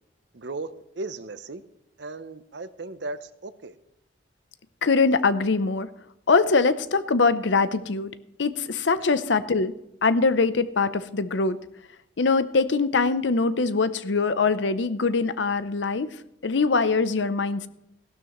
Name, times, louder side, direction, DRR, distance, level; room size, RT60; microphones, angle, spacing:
voice 1, 0.3-0.7 1.0-1.6 2.0-3.8, right 3 dB, 65° right, 12 dB, 0.7 m, -36 dB
voice 2, 4.8-5.9 6.3-8.1 8.4-9.7 10.0-11.6 12.2-16.1 16.4-17.7, left 4 dB, 75° left, 13 dB, 0.7 m, -23 dB
16.5 x 12.5 x 3.1 m, 0.84 s
head